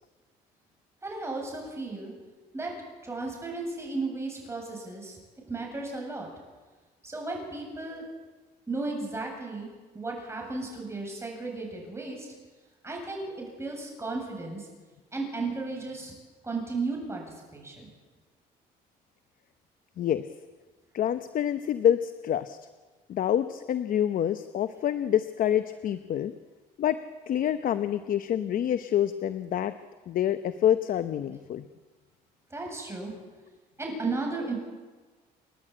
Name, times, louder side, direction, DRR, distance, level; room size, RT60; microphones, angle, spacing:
voice 1, 1.0-2.1 2.5-2.7 3.0-5.2 5.5-6.3 7.0-8.1 8.7-9.7 9.9-12.3 12.8-14.7 15.1-16.1 16.4-17.9 32.5-33.1 33.8-34.5, right 3 dB, 15° right, 0 dB, 7.9 m, -34 dB
voice 2, 20.9-22.6 23.1-26.3 26.8-27.0 27.3-29.7 30.1-31.7, left 10 dB, 55° left, 11 dB, 0.9 m, -27 dB
29.5 x 11.0 x 8.7 m, 1.3 s
cardioid pair, 110°, 17 cm